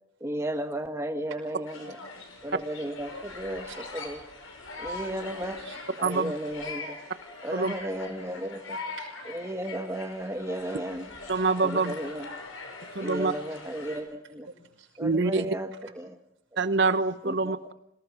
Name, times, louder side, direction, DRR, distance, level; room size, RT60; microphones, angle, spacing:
voice 1, 0.2-2.0 2.4-4.2 4.8-5.6 6.0-7.0 7.4-8.8 9.3-11.1 11.6-12.3 13.0-14.5 15.0-16.1 17.2-17.7, right 1 dB, 15° right, 1.3 m, -34 dB
sound 1, 1.7-14.0, left 3 dB, 70° left, 5.7 m, -42 dB
voice 2, 1.9-2.5 3.7-3.9 4.8-6.2 7.8-7.9 8.3-8.4 8.9-9.5 13.1-13.2 13.8-15.1, right 4 dB, 70° right, 5.9 m, -51 dB
voice 3, 6.0-6.3 7.5-7.7 11.3-11.9 12.9-13.3 15.0-15.4 16.6-17.6, right 3 dB, 50° right, 1.0 m, -25 dB
27.5 x 18.5 x 6.1 m
head